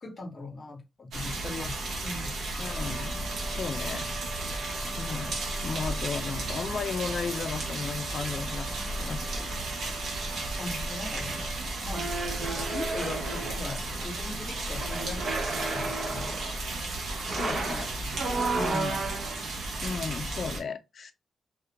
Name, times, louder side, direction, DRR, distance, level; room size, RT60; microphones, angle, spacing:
voice 1, 0.0-2.4 10.6-11.5 11.8-16.3, left 2 dB, 35° left, 0.8 m, -40 dB
sound 1, 1.1-20.6, right 2 dB, 85° right, 0.8 m, -34 dB
voice 2, 2.6-4.1 5.0-8.7 9.0-9.6 17.4-17.9 18.5-19.1 19.8-21.1, left 5 dB, 55° left, 0.4 m, -35 dB
Wind instrument woodwind instrument, 2.6-11.7, right 3 dB, 60° right, 1.0 m, -45 dB
sound 2, 11.9-13.8 14.7-16.5 17.2-19.4, right 3 dB, 40° right, 0.5 m, -32 dB
2.4 x 2.1 x 2.8 m
cardioid pair, 115°, 0 cm